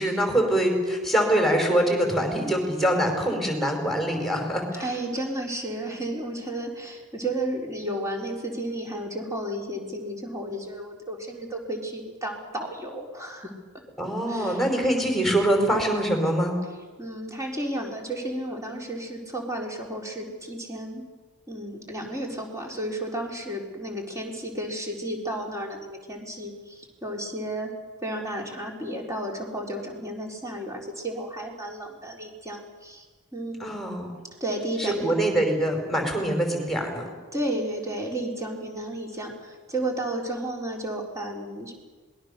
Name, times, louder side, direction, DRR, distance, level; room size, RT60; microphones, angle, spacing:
voice 1, 0.0-4.8 14.0-16.5 33.6-34.1 34.8-37.1, right 1 dB, ahead, 3 dB, 5.2 m, -24 dB
voice 2, 4.7-13.5 14.3-14.7 17.0-21.0 21.5-27.7 28.0-33.1 33.3-33.6 34.4-35.1 37.3-41.7, right 1 dB, 15° right, 1 dB, 4.2 m, -32 dB
26.5 x 21.0 x 6.9 m, 1.4 s
head